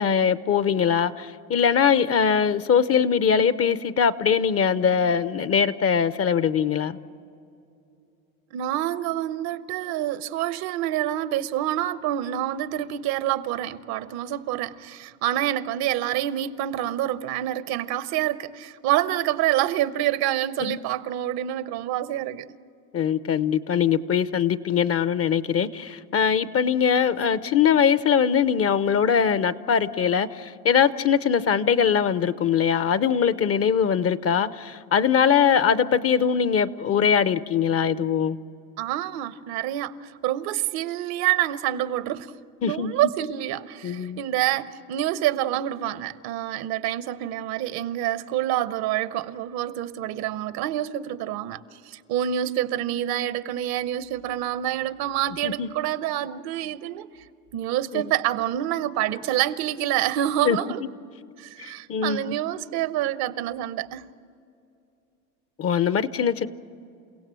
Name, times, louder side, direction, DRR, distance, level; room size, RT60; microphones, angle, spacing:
voice 1, 0.0-7.0 20.6-20.8 22.9-38.4 42.6-42.9 43.8-44.2 55.4-55.7 57.9-58.1 60.4-60.6 61.6-62.4 65.6-66.5, left 7 dB, 35° left, 0.7 m, -22 dB
voice 2, 8.5-22.5 38.8-42.3 42.6-57.1 57.5-60.8 61.4-64.1, right 12 dB, 60° right, 0.9 m, -27 dB
29.5 x 17.0 x 7.6 m
hypercardioid pair, 90°, 43 cm